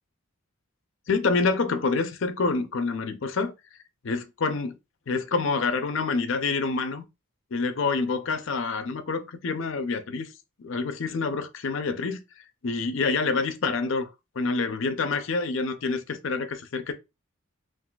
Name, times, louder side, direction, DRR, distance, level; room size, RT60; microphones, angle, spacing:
voice 1, 1.1-3.5 4.0-4.8 5.1-7.0 7.5-10.3 10.6-12.2 12.6-14.1 14.4-16.9, left 4 dB, 60° left, 0.5 m, -27 dB
3.9 x 2.5 x 2.3 m
head